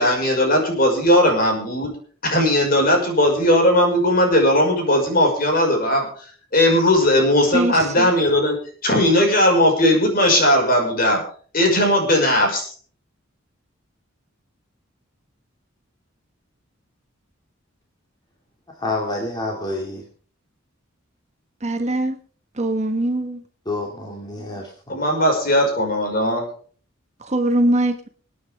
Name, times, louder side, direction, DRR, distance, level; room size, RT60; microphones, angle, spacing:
voice 1, 0.0-1.9 2.2-6.1 6.5-8.6 8.8-11.2 11.5-12.7 24.9-26.4, left 1 dB, 45° left, 2 dB, 5.6 m, -18 dB
voice 2, 7.5-8.1 21.6-22.2 22.6-23.4 27.2-28.1, right 1 dB, 35° right, 6 dB, 1.4 m, -21 dB
voice 3, 18.8-20.0 23.7-24.6, left 2 dB, 20° left, 0 dB, 2.5 m, -27 dB
26.0 x 9.4 x 3.6 m, 0.43 s
head